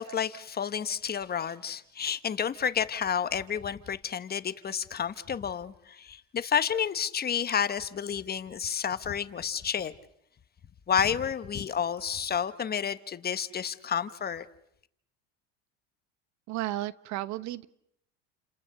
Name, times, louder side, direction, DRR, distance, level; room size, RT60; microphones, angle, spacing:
voice 1, 0.0-9.9 10.9-14.4, left 8 dB, 30° left, 1.3 m, -30 dB
voice 2, 16.5-17.7, right 15 dB, 55° right, 1.1 m, -33 dB
29.5 x 27.0 x 6.7 m
supercardioid pair, 100°, 34 cm